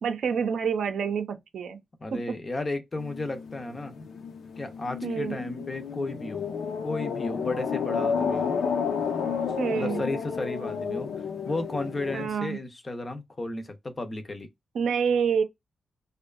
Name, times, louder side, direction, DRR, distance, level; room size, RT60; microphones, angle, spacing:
voice 1, 0.0-1.8 2.1-2.4 5.0-5.4 9.6-10.0 12.1-12.6 14.7-15.4, right 6 dB, 80° right, 0.5 m, -27 dB
voice 2, 2.0-4.1 4.6-6.5 6.8-8.6 9.7-11.1 11.4-14.5, left 2 dB, 25° left, 0.4 m, -33 dB
sound 1, 3.0-12.3, left 6 dB, 85° left, 0.5 m, -31 dB
2.6 x 2.2 x 2.2 m
wide cardioid pair, 170°, 0 cm